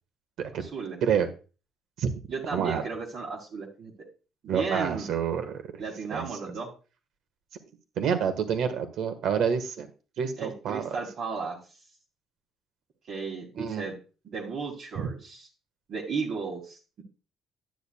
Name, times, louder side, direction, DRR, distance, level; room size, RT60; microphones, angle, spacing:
voice 1, 0.6-1.0 2.3-3.9 4.4-5.1 5.8-6.7 10.4-11.6 13.1-13.9 14.2-15.5 15.9-17.0, right 5 dB, 45° right, -1 dB, 2.0 m, -34 dB
voice 2, 2.5-2.8 4.5-5.7 6.1-6.3 8.0-9.9 10.2-11.0 13.6-13.9 15.0-15.1, right 7 dB, 60° right, 8 dB, 1.5 m, -28 dB
10.5 x 9.2 x 2.3 m, 0.34 s
cardioid pair, 160°, 0 cm